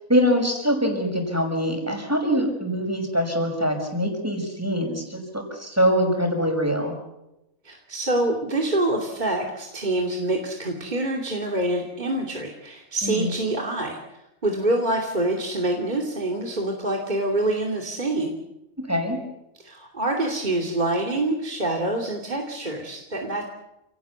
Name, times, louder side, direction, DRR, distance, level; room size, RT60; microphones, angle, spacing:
voice 1, 0.1-6.9 13.0-13.3 18.9-19.2, equal, 10° right, 3 dB, 6.1 m, -23 dB
voice 2, 7.6-18.3 19.6-23.5, right 1 dB, 35° right, 0 dB, 2.9 m, -26 dB
29.5 x 18.0 x 8.4 m, 0.92 s
omnidirectional pair, 1.4 m